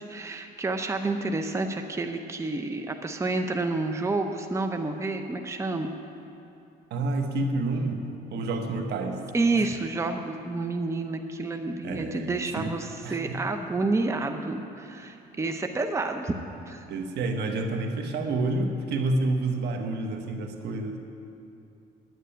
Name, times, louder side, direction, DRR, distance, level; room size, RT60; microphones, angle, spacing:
voice 1, 0.0-5.9 9.3-16.3 16.7-16.8, right 3 dB, 15° right, 5 dB, 0.7 m, -29 dB
voice 2, 6.9-9.2 9.5-9.7 11.8-12.7 13.0-13.4 16.9-21.0, right 2 dB, 70° right, 4 dB, 1.4 m, -29 dB
9.8 x 9.4 x 9.1 m, 2.7 s
cardioid pair, 105°, 18 cm